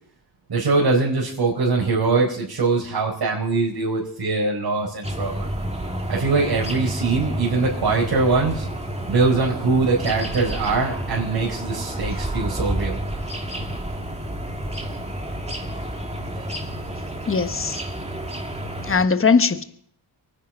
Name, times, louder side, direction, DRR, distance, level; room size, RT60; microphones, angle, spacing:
voice 1, 0.5-5.5 6.1-8.7 9.1-13.0 16.4-16.5, right 3 dB, 60° right, -4 dB, 4.7 m, -22 dB
sound 1, 5.0-19.0, right 1 dB, 15° right, 2.3 m, -30 dB
voice 2, 17.3-17.8 18.8-19.6, left 5 dB, 25° left, 10 dB, 1.3 m, -19 dB
23.5 x 9.9 x 4.7 m, 0.63 s
cardioid pair, 55°, 47 cm